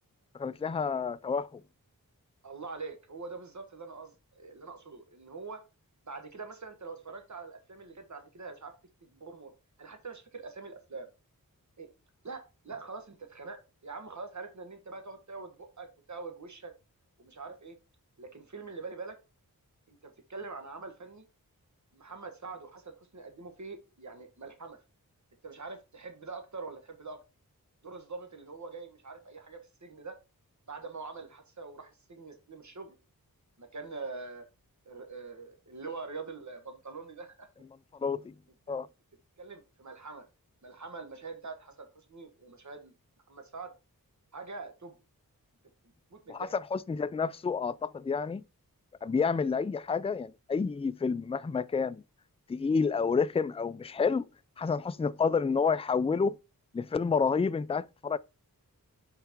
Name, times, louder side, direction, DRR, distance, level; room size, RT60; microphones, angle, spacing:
voice 1, 0.3-1.6 37.9-38.3 38.7-38.9 46.3-48.4 49.0-52.0 52.5-54.3 54.6-56.4 56.7-58.2, left 5 dB, 20° left, 0.3 m, -29 dB
voice 2, 2.4-5.6 6.0-8.7 9.0-9.5 9.8-11.1 11.8-11.9 12.2-16.7 17.2-17.8 18.2-19.2 19.9-21.3 21.9-24.8 25.4-27.2 27.8-30.2 30.7-33.0 33.6-34.5 34.8-37.5 38.7-38.8 39.4-40.3 40.6-42.9 43.3-43.7 44.3-44.9 46.1-46.5, right 4 dB, 50° right, 1.4 m, -44 dB
5.7 x 4.5 x 4.4 m
wide cardioid pair, 65°, 35 cm